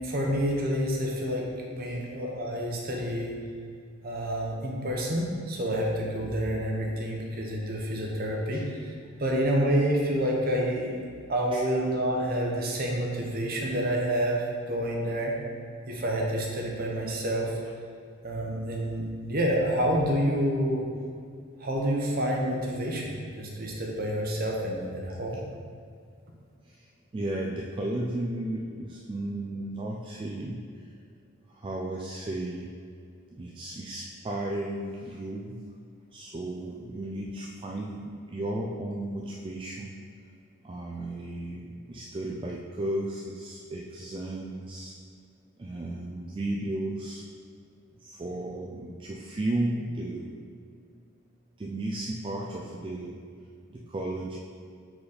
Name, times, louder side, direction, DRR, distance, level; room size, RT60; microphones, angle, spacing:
voice 1, 0.0-3.4 4.0-8.9 9.2-15.3 15.9-17.5 18.2-20.8 21.6-25.4, equal, 45° right, -1 dB, 0.9 m, -28 dB
voice 2, 26.6-30.9 31.5-32.7 33.4-35.6 36.1-39.9 40.6-44.9 45.6-47.2 48.0-50.3 51.6-53.2 53.7-54.4, right 1 dB, 25° right, -2 dB, 0.3 m, -34 dB
4.9 x 4.6 x 4.2 m, 2.2 s
head